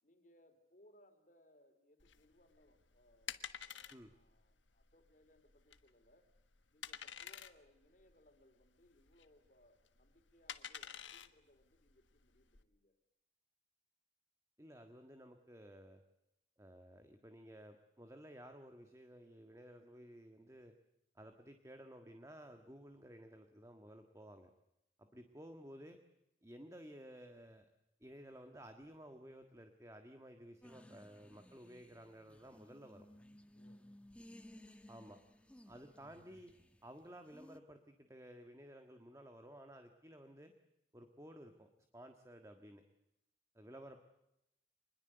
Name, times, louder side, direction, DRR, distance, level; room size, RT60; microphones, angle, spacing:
voice 1, 0.0-6.3 6.7-12.9 25.1-25.2 33.5-33.8 43.7-44.0, left 1 dB, 45° left, 7 dB, 3.9 m, -69 dB
sound 1, 2.0-12.6, left 9 dB, 85° left, 1.5 m, -51 dB
voice 2, 14.6-16.0 16.6-20.7 21.1-24.5 25.0-26.0 26.4-27.7 28.0-33.1 34.9-35.2 35.7-36.5 36.8-40.5 40.9-42.8 43.5-44.0, equal, 15° right, 6 dB, 1.6 m, -55 dB
sound 2, 30.6-37.6, left 1 dB, 5° left, 1.2 m, -59 dB
26.0 x 21.0 x 8.0 m, 0.84 s
head